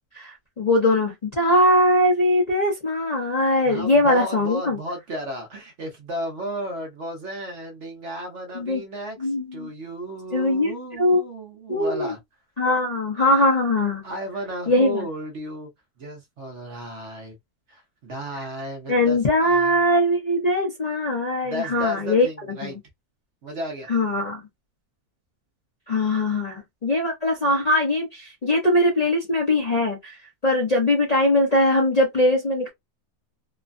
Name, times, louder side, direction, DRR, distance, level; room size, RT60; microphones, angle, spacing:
voice 1, 0.1-4.8 8.5-8.8 9.2-9.7 10.3-11.2 11.7-12.1 12.6-14.0 14.7-15.1 18.9-22.3 22.6-22.8 23.9-24.4 25.9-32.7, left 1 dB, 40° left, 0.6 m, -21 dB
voice 2, 3.6-12.2 14.0-15.7 16.0-17.4 17.7-19.8 21.4-22.8 23.4-23.9, equal, 55° right, 0.9 m, -34 dB
3.1 x 2.1 x 2.5 m
omnidirectional pair, 1.7 m